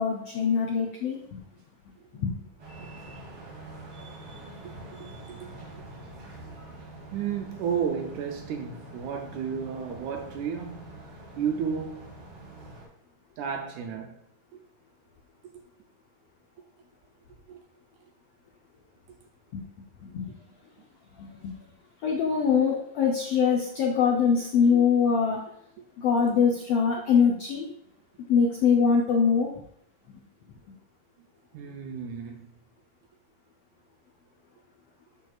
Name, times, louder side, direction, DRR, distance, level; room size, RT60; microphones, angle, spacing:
voice 1, 0.0-1.4 2.1-2.5 19.5-19.6 20.0-20.3 21.2-21.5 22.0-25.4 26.0-27.7 28.3-29.5 30.1-30.2, left 6 dB, 80° left, 1.4 m, -23 dB
sound 1, 2.6-12.9, right 2 dB, 45° right, 2.6 m, -45 dB
voice 2, 4.6-5.8 7.1-11.0 11.4-12.0 13.4-14.2 15.5-15.6 17.5-17.6 31.5-32.5, right 7 dB, 75° right, 1.9 m, -33 dB
12.5 x 4.6 x 2.4 m
omnidirectional pair, 3.9 m